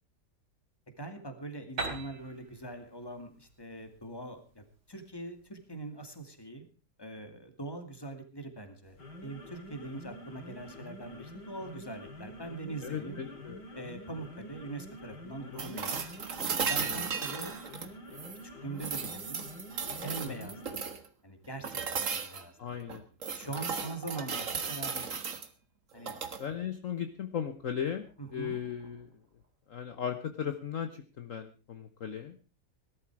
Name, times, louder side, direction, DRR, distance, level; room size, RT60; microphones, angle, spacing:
voice 1, 1.0-6.7 7.0-9.0 9.2-13.2 13.7-16.0 16.6-17.5 18.1-18.2 18.6-19.5 20.0-20.8 21.2-22.8 23.3-25.3 25.9-26.2 28.2-28.6, right 2 dB, 15° left, 6 dB, 2.5 m, -42 dB
Piano, 1.8-5.4, right 3 dB, 80° right, 4.4 m, -42 dB
sound 1, 8.9-20.8, equal, 80° left, 4.3 m, -47 dB
voice 2, 12.8-13.8 15.4-15.9 16.8-17.0 20.2-20.3 22.6-23.0 26.4-28.1 28.3-29.1 29.7-32.4, left 8 dB, 50° left, 7 dB, 1.4 m, -37 dB
sound 2, 15.6-18.4 18.8-21.1 21.6-22.4 22.9-25.5 26.0-26.4 28.4-28.5, right 5 dB, 50° right, 1.8 m, -35 dB
18.5 x 13.0 x 4.8 m, 0.36 s
omnidirectional pair, 1.8 m